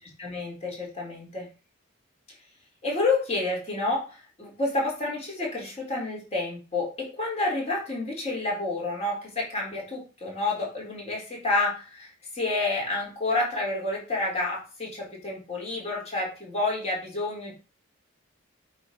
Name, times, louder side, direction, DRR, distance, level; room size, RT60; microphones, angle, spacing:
voice 1, 0.2-1.5 2.8-17.5, left 2 dB, 30° left, -3 dB, 3.3 m, -29 dB
8.0 x 3.4 x 5.7 m, 0.32 s
head